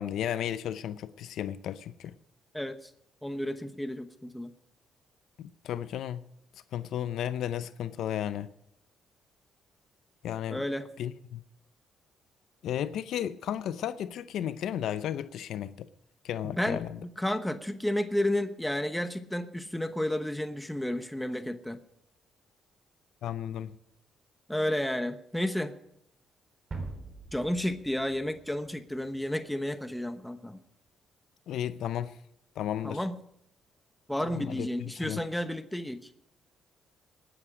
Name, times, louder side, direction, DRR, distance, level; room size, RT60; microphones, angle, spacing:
voice 1, 0.0-2.1 5.4-6.2 6.7-8.5 10.2-10.6 11.0-11.4 12.6-15.9 16.2-17.0 23.2-23.8 31.5-32.2 32.6-33.0 34.3-35.2, left 10 dB, 75° left, 0.6 m, -34 dB
voice 2, 2.5-2.9 3.2-4.5 10.5-10.9 16.4-21.8 24.5-25.7 27.3-30.6 32.8-33.2 34.1-36.1, left 1 dB, 5° left, 1.0 m, -32 dB
sound 1, 26.7-29.2, right 3 dB, 35° right, 3.7 m, -43 dB
19.0 x 10.0 x 5.0 m
cardioid pair, 90°, 0 cm